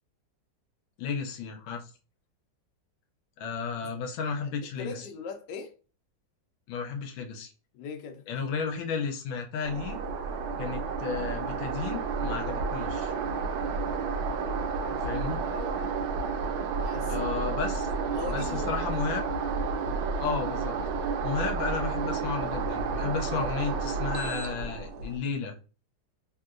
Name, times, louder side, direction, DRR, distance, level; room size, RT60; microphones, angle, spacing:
voice 1, 1.0-1.9 3.4-5.0 6.7-7.5 8.3-10.0 10.6-13.1 14.9-15.4 17.1-17.9 18.2-19.2 20.2-20.8 21.2-25.5, left 5 dB, 85° left, 1.4 m, -33 dB
voice 2, 4.8-5.7 7.7-8.2 15.5-15.9 16.6-17.4 18.1-18.7 23.3-23.5, left 5 dB, 70° left, 1.2 m, -40 dB
sound 1, 9.6-25.2, right 4 dB, 85° right, 1.3 m, -31 dB
3.5 x 2.8 x 2.4 m
omnidirectional pair, 2.1 m